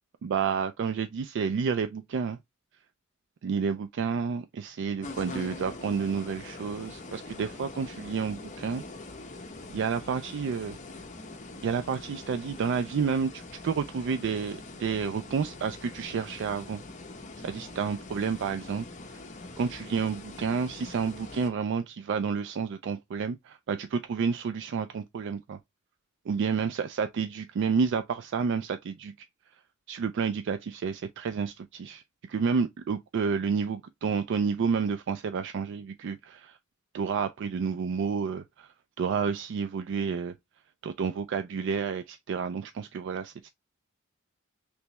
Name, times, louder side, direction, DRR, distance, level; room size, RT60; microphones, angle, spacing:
voice 1, 0.2-2.4 3.4-8.8 9.7-10.8 11.6-16.8 17.4-18.9 19.6-25.6 26.3-29.1 29.9-32.0 32.3-36.6 36.9-38.7 39.0-40.3 40.8-43.5, right 6 dB, 60° right, 0.3 m, -30 dB
sound 1, 5.0-21.5, left 2 dB, 35° left, 0.7 m, -43 dB
3.3 x 3.1 x 2.8 m
head